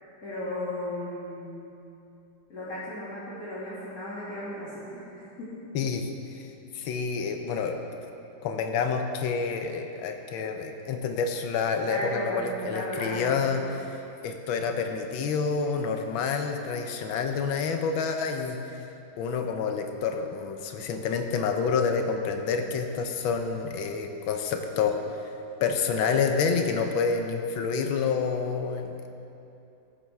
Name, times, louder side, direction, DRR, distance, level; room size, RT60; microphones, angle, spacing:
voice 1, 0.2-1.7 2.5-5.5 11.8-13.6, left 1 dB, 45° left, -12 dB, 2.5 m, -35 dB
voice 2, 5.7-6.1 6.3-6.5 6.7-7.8 8.4-18.6 19.2-25.0 25.6-29.1, left 5 dB, 80° left, 5 dB, 1.5 m, -28 dB
15.0 x 7.5 x 3.5 m, 2.8 s
omnidirectional pair, 2.1 m